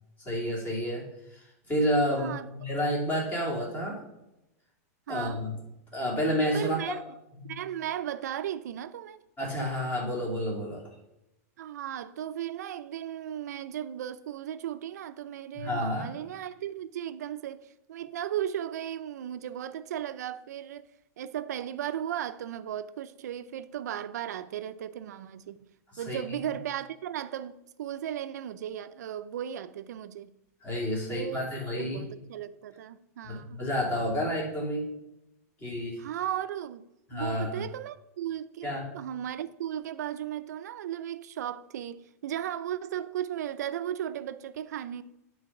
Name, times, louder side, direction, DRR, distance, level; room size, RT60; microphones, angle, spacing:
voice 1, 0.3-1.0 1.3-1.4 1.7-4.0 5.1-5.6 5.9-7.0 7.3-7.5 9.4-10.8 15.5-16.1 26.1-26.2 30.6-32.0 33.2-34.9 35.6-36.0 37.1-37.6 38.6-38.9, equal, 20° left, 2.8 m, -30 dB
voice 2, 2.1-2.5 5.1-5.4 6.5-7.0 7.5-9.2 11.6-20.9 21.2-25.6 26.0-30.3 31.0-31.5 31.8-33.6 36.0-36.9 37.1-45.0, right 10 dB, 85° right, 0.6 m, -36 dB
10.0 x 4.1 x 5.9 m
supercardioid pair, 150°, 9 cm